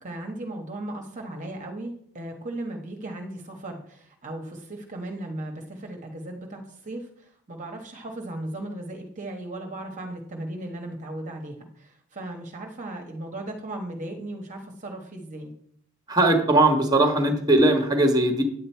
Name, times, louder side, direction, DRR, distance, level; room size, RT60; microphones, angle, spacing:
voice 1, 0.0-15.5, right 1 dB, 35° right, 2 dB, 1.2 m, -36 dB
voice 2, 16.1-18.4, right 2 dB, 20° right, 6 dB, 1.4 m, -19 dB
9.6 x 8.7 x 4.5 m, 0.64 s
head